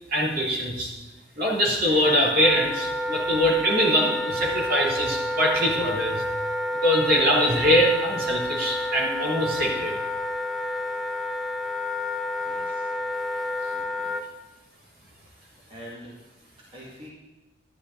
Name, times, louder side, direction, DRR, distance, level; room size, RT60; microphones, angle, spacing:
voice 1, 0.1-0.9 1.4-6.2 6.8-10.0, equal, 55° right, -3 dB, 3.1 m, -23 dB
Wind instrument woodwind instrument, 2.0-14.2, left 1 dB, ahead, 0.5 m, -29 dB
voice 2, 12.5-12.8 13.6-14.1 15.7-16.1 16.7-17.1, equal, 30° right, -5 dB, 2.1 m, -44 dB
12.0 x 11.0 x 3.9 m, 1.1 s
head